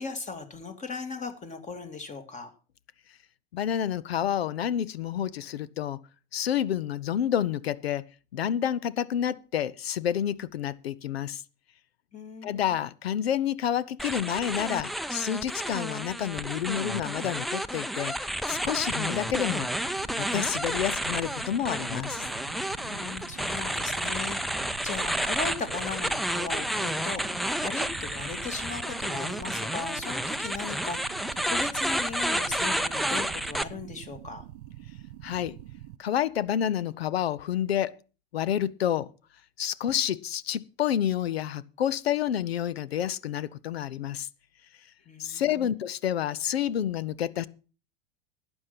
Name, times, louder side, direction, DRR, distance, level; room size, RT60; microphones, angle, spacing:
voice 1, 0.0-2.5 12.1-12.8 22.8-24.4 24.8-34.4 45.1-45.8, left 4 dB, 25° left, 2.6 m, -38 dB
voice 2, 3.5-6.0 6.3-8.0 8.3-11.4 12.4-19.7 20.2-22.3 35.2-35.6 36.0-37.9 38.3-39.1 39.6-44.3 45.2-47.5, left 10 dB, 80° left, 0.8 m, -29 dB
sound 1, 14.0-33.6, equal, ahead, 0.6 m, -31 dB
sound 2, 18.5-36.0, right 14 dB, 60° right, 0.9 m, -45 dB
12.0 x 9.0 x 6.0 m
hypercardioid pair, 90°, 30 cm